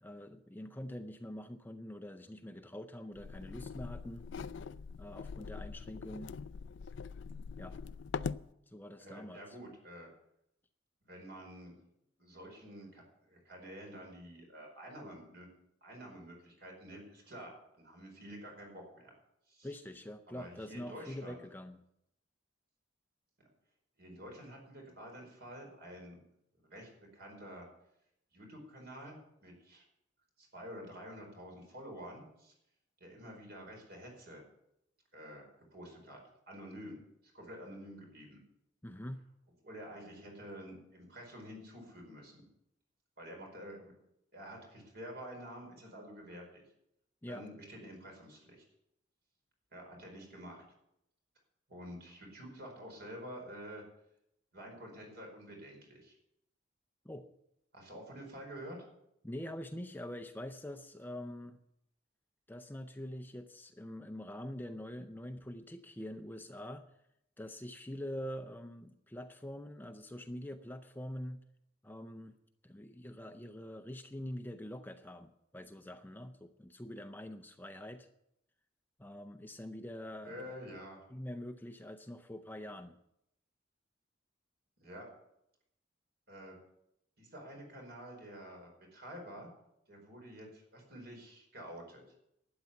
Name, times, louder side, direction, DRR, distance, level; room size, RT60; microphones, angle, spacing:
voice 1, 0.0-4.3 5.0-6.3 7.6-7.8 8.7-9.6 19.6-21.8 38.8-39.2 47.2-47.5 57.0-57.3 59.2-61.6 62.5-66.9 67.4-71.4 71.8-72.4 72.6-78.1 79.0-80.6 81.1-83.0, left 1 dB, 10° left, 8 dB, 0.5 m, -45 dB
sound 1, 3.2-8.5, left 5 dB, 65° left, 0.4 m, -43 dB
voice 2, 9.0-10.1 11.0-11.8 12.2-15.5 15.8-19.1 19.5-19.7 20.3-21.4 23.4-23.5 24.0-26.2 26.6-27.7 28.3-29.8 30.4-32.5 33.0-34.4 35.1-36.2 36.5-37.0 37.3-38.4 39.6-42.4 43.2-43.9 44.3-46.6 47.3-48.6 49.7-50.6 51.7-53.8 54.5-56.1 57.7-58.8 80.2-81.1 84.8-85.1 86.3-86.6 87.2-89.5 89.9-92.0, equal, 55° right, 1 dB, 4.9 m, -49 dB
12.0 x 9.6 x 7.1 m, 0.80 s
head